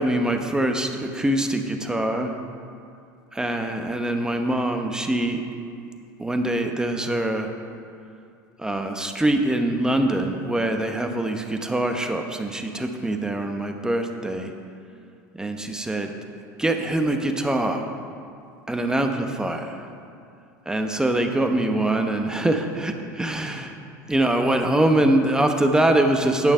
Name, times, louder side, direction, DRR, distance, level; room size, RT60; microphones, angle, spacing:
voice 1, 0.0-2.3 3.3-5.4 6.2-7.5 8.6-14.5 15.3-16.1 16.6-17.9 18.7-19.9 20.7-23.8 24.1-26.5, right 1 dB, 5° right, 5 dB, 0.9 m, -23 dB
9.3 x 6.9 x 5.6 m, 2.5 s
hypercardioid pair, 95°, 10 cm